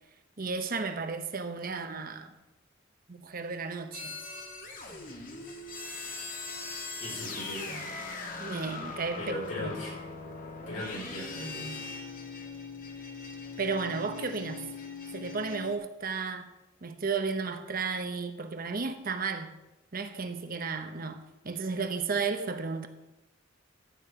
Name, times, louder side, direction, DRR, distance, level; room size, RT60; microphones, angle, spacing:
voice 1, 0.4-2.3 3.1-4.2 8.4-9.8 13.6-14.6 15.1-16.5 16.8-19.5 19.9-22.9, right 4 dB, 50° right, 1.0 m, -33 dB
sound 1, 3.9-15.8, left 3 dB, 45° left, 1.7 m, -40 dB
voice 2, 7.0-7.9 9.2-9.9 10.7-11.9, left 1 dB, 80° left, 4.8 m, -38 dB
12.5 x 8.6 x 5.0 m
head